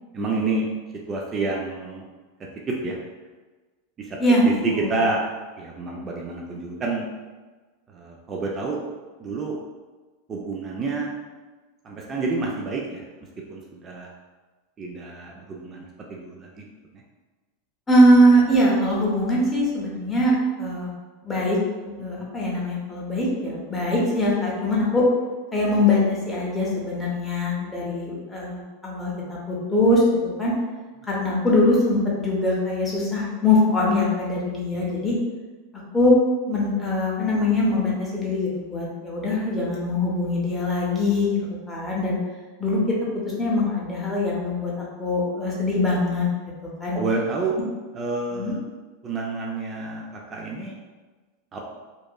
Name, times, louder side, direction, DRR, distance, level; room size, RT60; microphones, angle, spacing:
voice 1, 0.1-0.7 0.9-2.0 2.4-3.0 4.0-4.2 4.5-5.3 5.6-7.1 7.9-8.8 9.2-9.6 10.3-11.1 11.8-13.0 13.5-14.1 14.8-15.8 16.1-16.7 22.0-22.1 34.8-34.9 46.9-47.6 47.9-48.6 49.0-50.8 51.5-51.6, right 3 dB, 25° right, -1 dB, 0.3 m, -29 dB
voice 2, 4.2-4.9 17.9-20.9 21.2-21.6 21.8-25.1 25.5-30.0 30.4-30.5 31.1-35.1 35.9-36.2 36.5-41.4 41.7-42.2 42.6-42.8 43.1-46.3 46.8-47.0 48.3-48.5, left 1 dB, 10° left, -5 dB, 0.7 m, -22 dB
2.8 x 2.4 x 2.2 m, 1.3 s
supercardioid pair, 135°, 0 cm